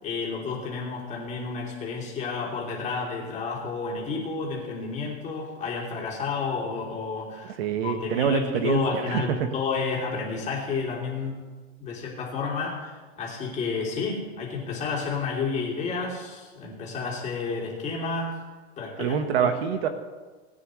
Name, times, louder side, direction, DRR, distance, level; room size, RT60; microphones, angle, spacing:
voice 1, 0.0-7.5 7.8-11.4 11.8-18.4 18.8-19.5, left 4 dB, 20° left, -3 dB, 3.1 m, -31 dB
voice 2, 7.4-9.5 19.0-19.9, right 7 dB, 75° right, 8 dB, 1.4 m, -26 dB
19.5 x 9.9 x 3.2 m, 1.4 s
supercardioid pair, 150°, 32 cm